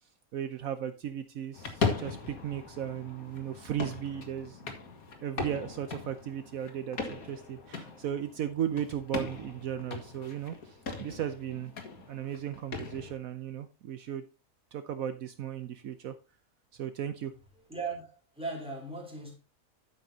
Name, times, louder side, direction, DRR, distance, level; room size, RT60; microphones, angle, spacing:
voice 1, 0.3-4.7 5.2-11.7 12.1-14.2 14.7-16.2 16.7-17.3, right 10 dB, 70° right, 1.2 m, -36 dB
sound 1, 1.5-13.1, left 4 dB, 75° left, 2.2 m, -39 dB
voice 2, 17.7-19.3, right 3 dB, 5° right, 3.7 m, -38 dB
10.5 x 8.9 x 2.8 m
omnidirectional pair, 1.5 m